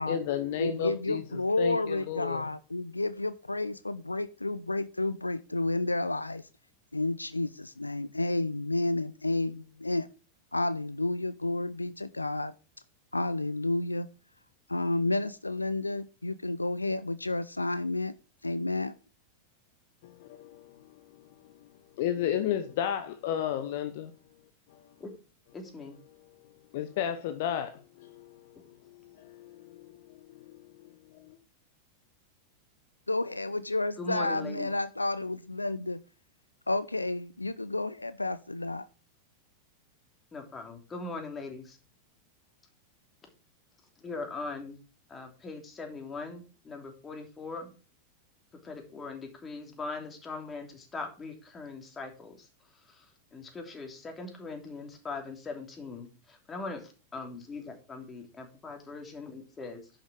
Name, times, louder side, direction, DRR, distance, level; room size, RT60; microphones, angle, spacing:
voice 1, 0.1-2.5 20.0-21.6 22.0-24.1 24.7-24.8 26.4-30.9 31.3-31.4, left 9 dB, 50° left, 0.9 m, -34 dB
voice 2, 0.6-6.4 6.9-10.1 10.5-12.5 13.1-14.1 14.7-18.2 18.4-18.9 33.1-36.0 36.7-38.9, left 2 dB, 85° left, 0.4 m, -31 dB
voice 3, 25.5-26.0 34.0-34.7 40.3-41.8 44.0-44.8 45.1-47.7 48.5-59.9, left 3 dB, 20° left, 3.0 m, -41 dB
10.5 x 6.5 x 4.8 m
figure-of-eight pair, 90°, 0 cm